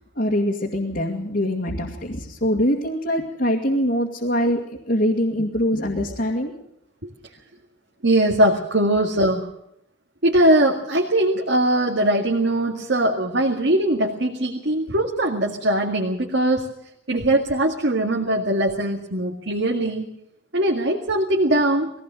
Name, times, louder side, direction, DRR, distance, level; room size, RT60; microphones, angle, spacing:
voice 1, 0.2-6.5, equal, 45° left, -2 dB, 2.1 m, -23 dB
voice 2, 8.0-9.5 10.2-16.6 17.1-20.1 20.5-21.9, right 1 dB, 55° right, 0 dB, 2.1 m, -21 dB
20.5 x 16.5 x 7.6 m, 0.79 s
head